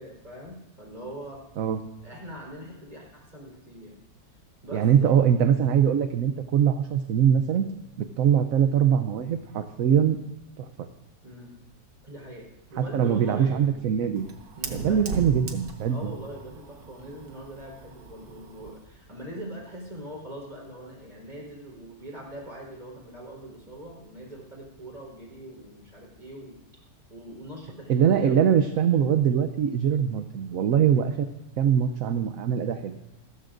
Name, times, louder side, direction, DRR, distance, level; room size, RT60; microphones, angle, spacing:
voice 1, 0.0-1.4 2.0-4.0 4.6-5.1 11.2-11.6 12.0-13.7 14.6-15.2 15.9-26.6 27.1-28.5, right 1 dB, 30° right, -3 dB, 4.3 m, -42 dB
voice 2, 4.7-7.7 8.0-10.2 10.6-10.9 12.8-14.3 14.7-16.1 27.9-31.3 31.6-33.0, right 8 dB, 70° right, 8 dB, 1.1 m, -22 dB
Fire, 12.7-18.9, right 3 dB, 85° right, 1.9 m, -40 dB
28.5 x 14.0 x 2.6 m, 1.0 s
omnidirectional pair, 1.6 m